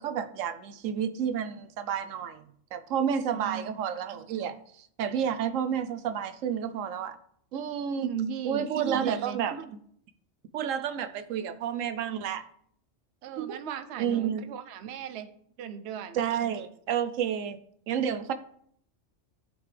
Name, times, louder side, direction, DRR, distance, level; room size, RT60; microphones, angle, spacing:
voice 1, 0.0-2.4 2.7-4.6 5.0-7.2 7.5-8.1 8.4-9.7 10.5-12.4 13.4-13.6 14.0-14.5 16.1-17.6 17.9-18.3, right 8 dB, 85° right, 10 dB, 1.0 m, -30 dB
voice 2, 3.3-3.8 8.0-9.4 13.2-15.3 15.6-16.2, right 8 dB, 65° right, 10 dB, 0.9 m, -37 dB
14.0 x 5.3 x 3.3 m, 0.65 s
omnidirectional pair, 1.3 m